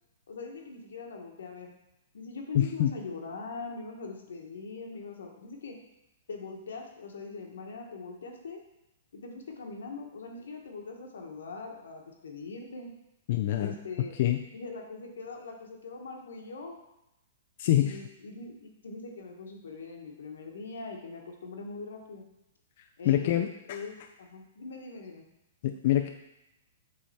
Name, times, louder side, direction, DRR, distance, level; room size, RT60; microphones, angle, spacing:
voice 1, 0.3-1.7 2.1-5.7 6.3-8.6 9.1-12.9 13.6-14.1 14.5-16.8 17.6-22.2 23.0-25.2 25.6-25.7, left 4 dB, 90° left, 2 dB, 1.3 m, -42 dB
voice 2, 2.5-2.9 13.3-13.7 14.2-14.4 17.6-18.0 23.0-23.8 25.6-26.1, left 12 dB, 50° left, 5 dB, 0.4 m, -25 dB
7.6 x 3.4 x 4.3 m, 0.90 s
hypercardioid pair, 155°, 0 cm